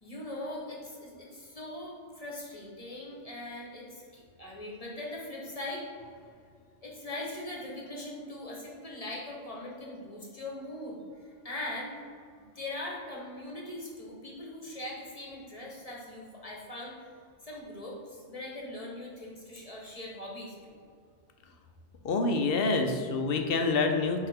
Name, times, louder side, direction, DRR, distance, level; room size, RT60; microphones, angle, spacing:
voice 1, 0.0-5.9 6.8-12.0 12.3-17.1 17.4-20.8, left 1 dB, 30° left, -3 dB, 1.2 m, -41 dB
voice 2, 22.0-24.3, left 3 dB, 60° left, 5 dB, 0.8 m, -27 dB
9.1 x 3.6 x 3.5 m, 2.2 s
omnidirectional pair, 1.2 m